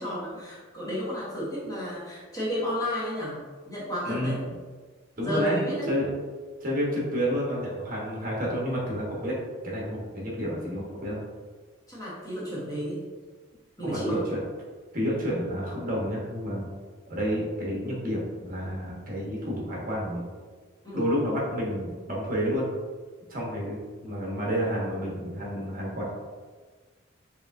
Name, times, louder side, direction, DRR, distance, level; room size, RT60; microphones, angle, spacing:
voice 1, 0.0-3.4 3.7-4.4 5.2-5.9 11.9-13.1 13.8-14.2 20.8-21.1, equal, 15° left, -8 dB, 1.1 m, -32 dB
voice 2, 4.0-4.3 5.2-5.6 5.9-6.1 6.6-9.3 9.6-11.2 13.8-14.4 14.9-16.7 17.1-20.3 20.9-22.7 23.3-23.8 24.0-26.1, equal, 45° right, -3 dB, 1.1 m, -30 dB
4.8 x 3.2 x 2.6 m, 1.4 s
head